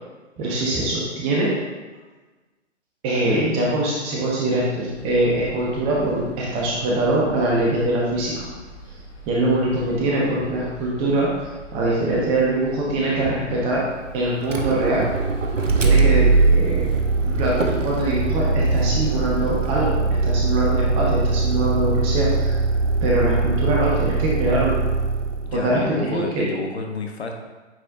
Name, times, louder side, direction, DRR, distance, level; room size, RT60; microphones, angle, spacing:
voice 1, 0.4-1.5 3.0-8.5 9.3-11.3 11.7-13.8 14.1-15.1 15.8-17.0 17.2-22.6 23.0-24.8 25.5-26.4, right 1 dB, 15° right, -4 dB, 0.9 m, -23 dB
sound 1, 4.9-19.4, equal, 5° left, 0.4 m, -41 dB
Motor vehicle (road), 14.4-25.6, right 3 dB, 85° right, 0.9 m, -21 dB
voice 2, 25.4-27.3, left 4 dB, 60° left, 3 dB, 1.0 m, -30 dB
9.1 x 4.2 x 2.6 m, 1.2 s
figure-of-eight pair, 130°, 37 cm